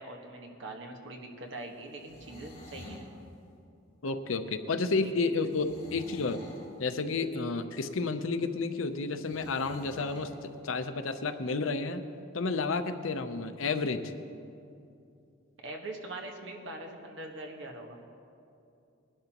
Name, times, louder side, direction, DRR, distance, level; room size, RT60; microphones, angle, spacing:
voice 1, 0.0-3.1 5.2-5.3 15.6-18.0, right 2 dB, 65° right, 2 dB, 1.4 m, -42 dB
sound 1, 1.9-3.1 5.5-6.7 9.2-10.3, left 1 dB, 30° left, 2.6 m, -49 dB
voice 2, 4.0-6.4 6.8-12.0 12.3-14.0, left 3 dB, 85° left, 9 dB, 0.7 m, -31 dB
20.5 x 11.5 x 3.0 m, 2.6 s
head